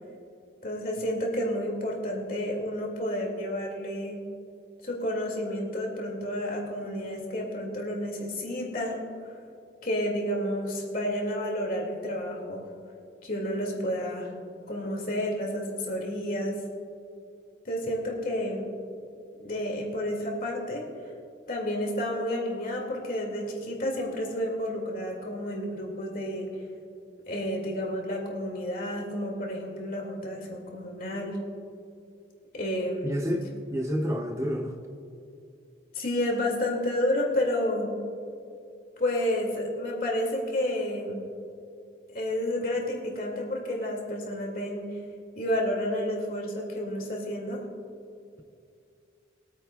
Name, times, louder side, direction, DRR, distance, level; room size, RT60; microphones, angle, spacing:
voice 1, 0.6-4.2 4.8-9.1 9.8-12.7 13.2-14.3 14.7-16.5 17.6-18.7 19.4-20.8 21.5-26.5 27.3-31.4 32.5-33.4 35.9-37.9 39.0-41.2 42.1-44.8 45.4-47.6, left 1 dB, 45° left, -1 dB, 2.2 m, -30 dB
voice 2, 33.0-33.5 33.7-34.7, equal, 15° right, 2 dB, 0.5 m, -28 dB
22.5 x 9.0 x 2.3 m, 2.4 s
head